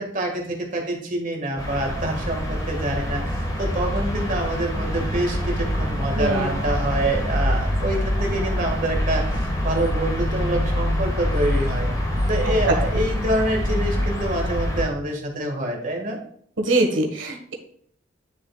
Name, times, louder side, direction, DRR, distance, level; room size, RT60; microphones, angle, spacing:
voice 1, 0.0-11.9 12.3-16.2, right 1 dB, 45° right, 2 dB, 1.9 m, -26 dB
sound 1, 1.6-14.8, left 1 dB, 20° left, 1.9 m, -25 dB
voice 2, 6.2-6.6 12.6-12.7 16.6-17.5, right 2 dB, 90° right, 3 dB, 1.6 m, -22 dB
9.9 x 6.4 x 2.4 m, 0.63 s
head